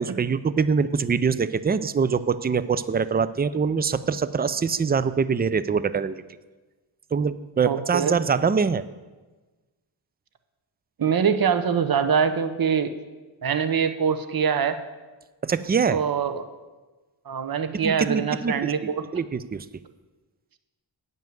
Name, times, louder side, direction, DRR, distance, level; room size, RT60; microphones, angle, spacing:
voice 1, 0.0-6.2 7.1-8.8 15.4-16.0 17.8-19.7, right 5 dB, 20° right, 15 dB, 0.3 m, -24 dB
voice 2, 7.6-8.1 11.0-12.9 13.4-14.8 15.9-16.5 17.3-19.0, right 7 dB, 50° right, 10 dB, 0.8 m, -24 dB
9.2 x 5.4 x 7.7 m, 1.2 s
cardioid pair, 60°, 47 cm